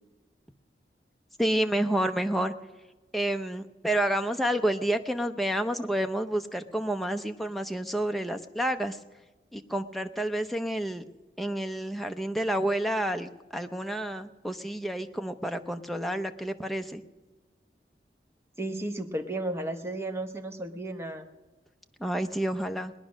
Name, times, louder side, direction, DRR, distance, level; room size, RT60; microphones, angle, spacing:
voice 1, 1.4-2.5 3.1-9.0 9.5-11.0 11.4-17.0 22.0-22.9, right 1 dB, ahead, 6 dB, 0.6 m, -29 dB
voice 2, 18.6-21.2, right 1 dB, 15° right, 5 dB, 1.0 m, -33 dB
20.0 x 10.0 x 6.2 m, 1.2 s
head